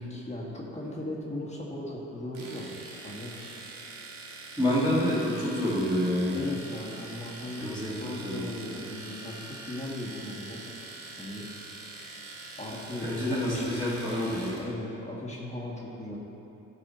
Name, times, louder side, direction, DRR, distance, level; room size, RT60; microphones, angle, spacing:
voice 1, 0.0-2.7 3.0-3.3 4.9-5.0 6.3-10.6 11.2-11.4 12.6-16.2, left 1 dB, 20° left, -3 dB, 1.6 m, -38 dB
Domestic sounds home sounds, 2.3-14.7, right 3 dB, 80° right, 1.4 m, -44 dB
voice 2, 4.6-6.4 7.6-8.5 13.0-14.5, equal, 10° right, -11 dB, 2.0 m, -28 dB
12.5 x 4.8 x 4.3 m, 3.0 s
cardioid pair, 90°, 30 cm